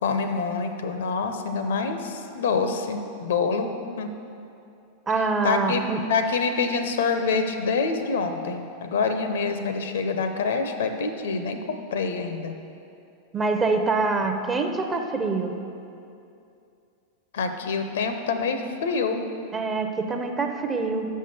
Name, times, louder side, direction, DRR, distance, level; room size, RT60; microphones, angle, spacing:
voice 1, 0.0-3.7 4.0-4.1 5.4-12.6 17.3-19.2, left 4 dB, 60° left, 7 dB, 0.6 m, -26 dB
voice 2, 5.1-6.0 13.3-15.5 19.5-21.1, right 3 dB, 20° right, 5 dB, 0.6 m, -25 dB
6.3 x 5.5 x 6.7 m, 2.6 s
figure-of-eight pair, 90°, 0 cm